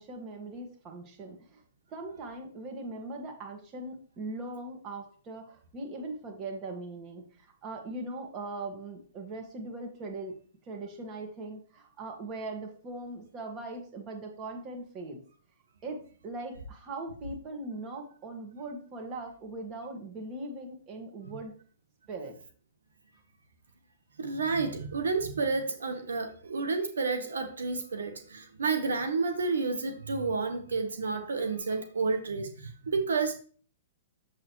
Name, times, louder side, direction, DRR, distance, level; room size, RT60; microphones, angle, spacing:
voice 1, 0.0-1.6 1.9-10.4 10.6-15.2 15.8-21.5 22.1-22.4, right 2 dB, 30° right, 3 dB, 1.8 m, -40 dB
voice 2, 24.2-33.4, right 4 dB, 90° right, 7 dB, 1.1 m, -30 dB
7.2 x 6.8 x 3.1 m, 0.42 s
hypercardioid pair, 135°, 0 cm